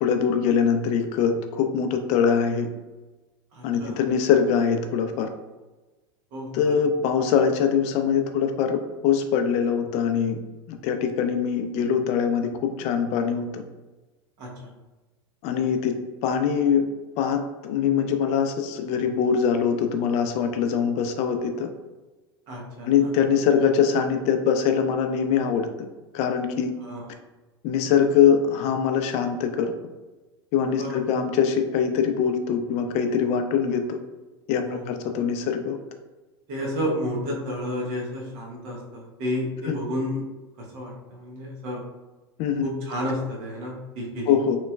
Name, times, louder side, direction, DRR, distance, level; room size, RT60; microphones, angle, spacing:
voice 1, 0.0-2.7 3.6-5.3 6.5-10.4 10.7-13.6 15.4-15.9 16.2-16.9 17.2-21.7 22.8-25.7 26.1-26.7 27.6-29.7 30.5-34.0 34.5-35.8 39.7-39.8 42.4-42.7 44.3-44.6, left 7 dB, 50° left, 6 dB, 0.4 m, -23 dB
voice 2, 3.5-4.0 6.3-6.7 14.4-14.7 22.5-22.9 26.8-27.1 30.8-31.0 34.6-34.9 36.5-40.2 40.6-41.8 42.6-44.4, equal, 55° right, -1 dB, 1.0 m, -31 dB
3.1 x 2.9 x 2.2 m, 1.2 s
hypercardioid pair, 100°, 14 cm